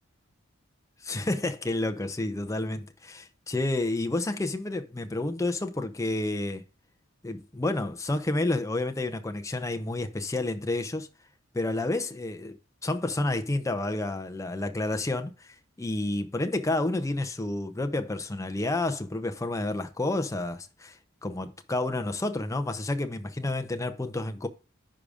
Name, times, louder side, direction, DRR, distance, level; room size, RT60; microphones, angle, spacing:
voice 1, 1.0-6.6 7.2-11.1 11.5-12.6 12.8-24.5, left 2 dB, 15° left, 0.6 m, -30 dB
10.0 x 4.9 x 2.4 m
head